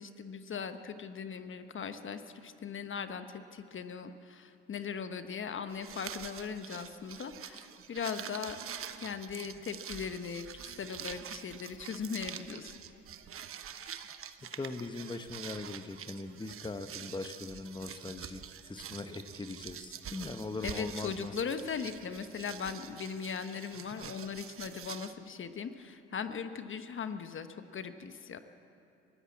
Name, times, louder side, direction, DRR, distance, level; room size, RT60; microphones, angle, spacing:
voice 1, 0.0-3.2 3.5-8.6 9.0-12.7 20.6-28.4, left 6 dB, 40° left, 9 dB, 1.2 m, -39 dB
sound 1, 5.7-25.1, right 8 dB, 45° right, 1.1 m, -46 dB
voice 2, 14.5-21.3, left 3 dB, 15° left, 9 dB, 1.1 m, -41 dB
23.5 x 13.5 x 8.6 m, 2.9 s
hypercardioid pair, 60°, 30 cm